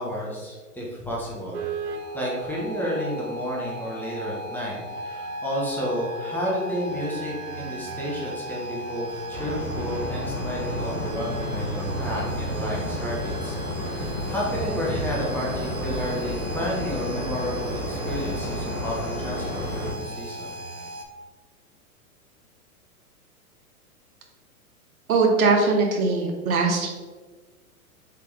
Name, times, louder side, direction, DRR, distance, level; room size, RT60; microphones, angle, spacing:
voice 1, 0.0-1.6 2.1-4.8 5.0-20.5, equal, 5° left, -5 dB, 0.7 m, -31 dB
sound 1, 1.5-21.1, right 1 dB, 50° right, 0.5 m, -37 dB
sound 2, 9.3-19.9, left 1 dB, 75° left, 1.2 m, -31 dB
voice 2, 25.1-26.9, right 3 dB, 70° right, 2 dB, 0.9 m, -21 dB
3.4 x 2.9 x 3.4 m, 1.4 s
figure-of-eight pair, 105°, 44 cm